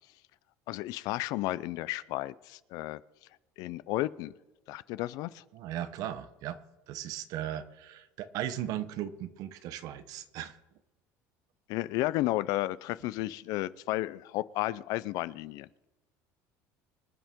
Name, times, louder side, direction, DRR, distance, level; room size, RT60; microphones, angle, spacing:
voice 1, 0.7-3.0 3.6-4.3 4.7-5.4 11.7-15.7, left 17 dB, 70° left, 18 dB, 0.5 m, -33 dB
voice 2, 5.5-6.6 6.9-10.6, right 11 dB, 65° right, 12 dB, 0.9 m, -37 dB
25.5 x 8.9 x 3.7 m, 1.1 s
cardioid pair, 125°, 7 cm